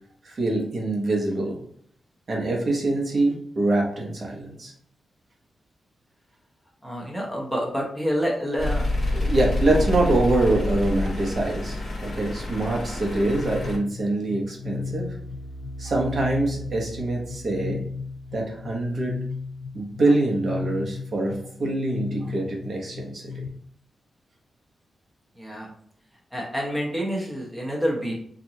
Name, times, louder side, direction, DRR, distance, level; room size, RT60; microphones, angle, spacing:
voice 1, 0.2-1.6 2.3-4.7 9.1-15.2 15.8-17.8 18.3-19.2 19.7-23.4, right 2 dB, 45° right, -1 dB, 1.0 m, -25 dB
voice 2, 6.8-8.8 9.7-9.8 25.4-25.7 26.3-28.1, equal, ahead, -2 dB, 0.9 m, -28 dB
sound 1, 8.6-13.8, left 2 dB, 45° left, 1.1 m, -27 dB
sound 2, 13.3-23.5, left 4 dB, 75° left, 0.5 m, -35 dB
4.5 x 2.6 x 2.7 m, 0.62 s
wide cardioid pair, 140°, 0 cm